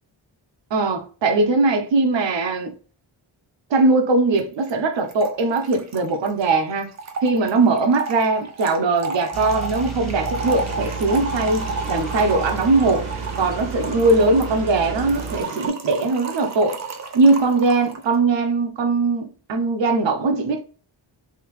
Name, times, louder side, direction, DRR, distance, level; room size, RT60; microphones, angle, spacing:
voice 1, 0.7-2.7 3.7-6.9 7.2-13.1 13.4-16.8 17.1-20.6, right 3 dB, 65° right, 0.8 m, -20 dB
Trickle dribble / Fill (with liquid), 4.3-4.4 4.7-4.8 5.0-18.1, right 3 dB, 35° right, 0.6 m, -33 dB
sound 1, 9.3-15.4, right 5 dB, ahead, 1.2 m, -32 dB
sound 2, 10.3-15.7, right 3 dB, 90° right, 1.2 m, -35 dB
3.5 x 2.8 x 3.1 m
wide cardioid pair, 85°, 47 cm